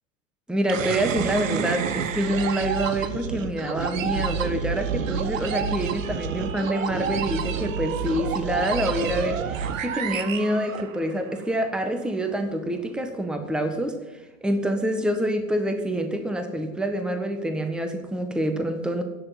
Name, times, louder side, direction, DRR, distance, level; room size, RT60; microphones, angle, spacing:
voice 1, 0.5-14.0 14.4-19.0, equal, ahead, 6 dB, 1.4 m, -26 dB
sound 1, 0.7-11.3, right 7 dB, 70° right, 1.3 m, -29 dB
15.5 x 6.9 x 9.2 m, 1.1 s
hypercardioid pair, 105°, 41 cm